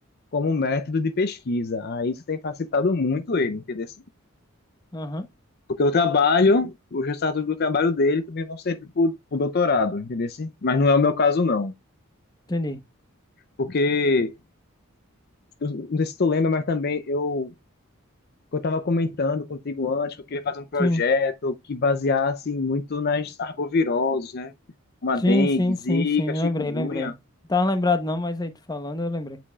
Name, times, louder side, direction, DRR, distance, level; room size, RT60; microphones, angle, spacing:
voice 1, 0.3-3.9 5.8-11.7 13.6-14.3 15.6-17.5 18.5-24.5 25.0-27.1, left 3 dB, 50° left, 0.5 m, -24 dB
voice 2, 4.9-5.2 12.5-12.8 20.8-21.0 25.2-27.1 27.5-29.4, left 2 dB, 20° left, 0.8 m, -25 dB
8.4 x 5.1 x 2.3 m
head